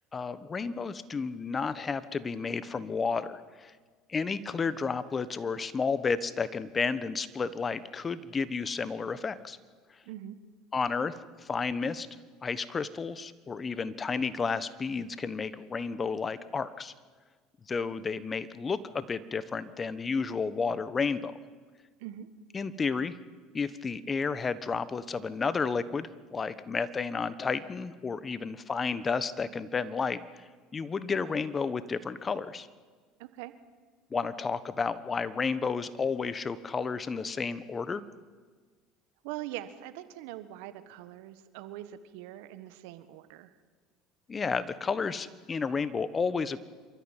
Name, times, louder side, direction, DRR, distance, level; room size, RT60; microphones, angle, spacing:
voice 1, 0.1-3.7 4.1-9.6 10.7-12.1 12.4-16.9 17.7-21.3 22.5-23.2 23.5-30.4 30.7-32.7 34.1-38.0 44.3-46.6, left 5 dB, 30° left, 15 dB, 1.2 m, -32 dB
voice 2, 10.0-10.4 22.0-22.3 33.2-33.5 39.2-43.5, right 13 dB, 75° right, 12 dB, 1.4 m, -42 dB
26.5 x 13.5 x 9.1 m, 1.5 s
hypercardioid pair, 80°, 0 cm